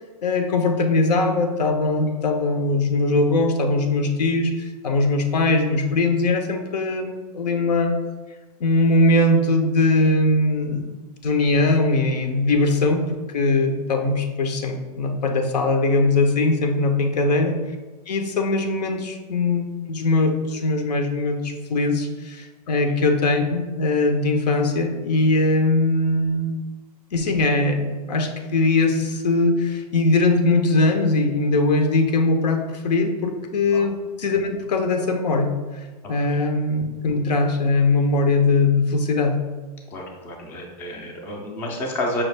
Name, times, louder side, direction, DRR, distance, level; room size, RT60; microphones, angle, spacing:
voice 1, 0.2-8.0 8.6-10.9 11.2-13.0 13.3-17.5 18.1-26.5 27.1-35.8 36.1-39.4, left 2 dB, 90° left, 5 dB, 0.7 m, -21 dB
voice 2, 39.9-42.2, left 1 dB, 10° left, 0 dB, 0.3 m, -30 dB
5.4 x 2.4 x 3.2 m, 1.2 s
hypercardioid pair, 160°, 20 cm